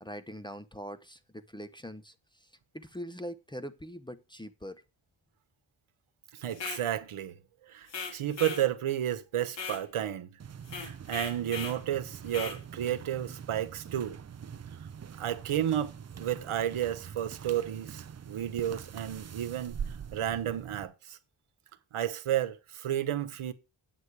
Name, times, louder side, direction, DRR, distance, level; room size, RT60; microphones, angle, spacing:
voice 1, 0.0-2.5 2.7-4.8, equal, 10° left, 0.7 m, -42 dB
voice 2, 6.3-7.4 7.7-10.4 10.8-14.2 15.2-15.9 16.2-21.2 21.9-23.5, right 11 dB, 85° right, 1.2 m, -32 dB
sound 1, 6.5-6.9 7.9-8.7 9.5-9.8 10.6-11.8 12.3-12.6, left 5 dB, 60° left, 1.9 m, -39 dB
sound 2, 10.4-20.8, right 7 dB, 35° right, 0.5 m, -44 dB
8.2 x 8.0 x 4.8 m
cardioid pair, 95°, 49 cm